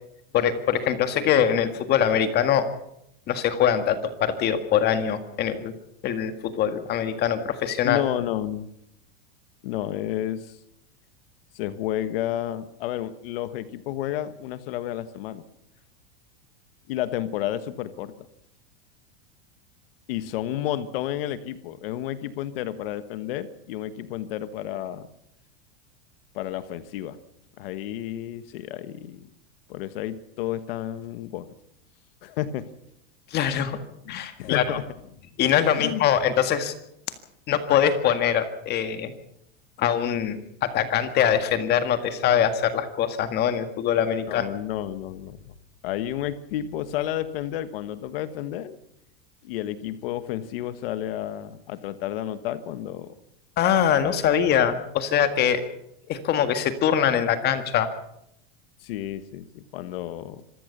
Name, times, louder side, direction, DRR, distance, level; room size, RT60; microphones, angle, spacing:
voice 1, 0.3-2.7 3.3-5.7 6.0-8.0 33.3-33.8 34.1-34.8 35.4-36.7 37.5-39.1 39.8-44.5 53.6-55.6 56.1-57.9, left 9 dB, 35° left, 9 dB, 1.8 m, -23 dB
voice 2, 7.8-8.7 9.6-10.6 11.5-15.4 16.9-18.3 20.1-25.1 26.3-27.2 27.6-29.3 29.7-31.5 32.2-32.7 34.0-34.8 35.8-36.0 44.3-45.5 45.8-48.8 49.4-53.1 58.8-60.4, left 12 dB, 70° left, 12 dB, 1.5 m, -31 dB
26.0 x 15.5 x 6.8 m, 0.77 s
supercardioid pair, 150°, 30 cm